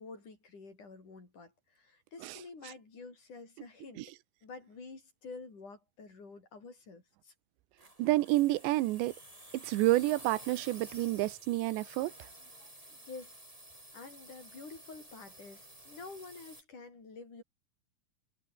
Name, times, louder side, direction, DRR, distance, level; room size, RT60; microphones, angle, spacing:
voice 1, 0.0-4.0 4.4-7.3 13.1-13.4 13.9-17.4, left 4 dB, 45° left, 7.8 m, -49 dB
sound 1, 7.8-16.6, right 1 dB, 10° right, 5.2 m, -52 dB
voice 2, 8.0-9.1 9.5-12.1, right 17 dB, 90° right, 3.2 m, -29 dB
omnidirectional pair, 4.9 m